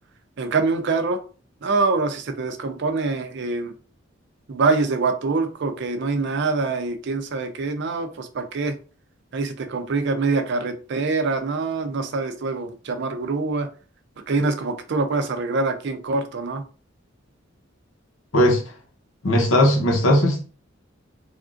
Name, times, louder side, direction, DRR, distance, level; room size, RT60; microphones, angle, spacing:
voice 1, 0.4-1.2 1.6-3.7 4.5-8.7 9.3-13.7 14.3-16.6, right 3 dB, 60° right, 0.5 m, -24 dB
voice 2, 19.2-20.4, left 1 dB, 85° left, 0.9 m, -18 dB
3.5 x 2.4 x 2.5 m
head